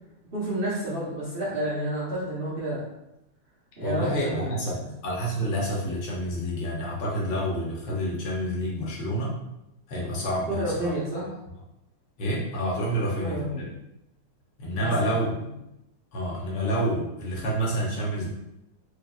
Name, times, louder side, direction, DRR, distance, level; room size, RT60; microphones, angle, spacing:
voice 1, 0.3-2.8 3.8-4.6 10.5-11.3 13.2-13.7 14.7-15.1, right 1 dB, 50° right, -8 dB, 0.6 m, -30 dB
voice 2, 3.8-9.3 9.9-10.9 12.2-13.6 14.6-15.3 16.1-18.3, equal, 65° left, -4 dB, 1.3 m, -28 dB
4.9 x 2.8 x 2.3 m, 0.88 s
omnidirectional pair, 2.4 m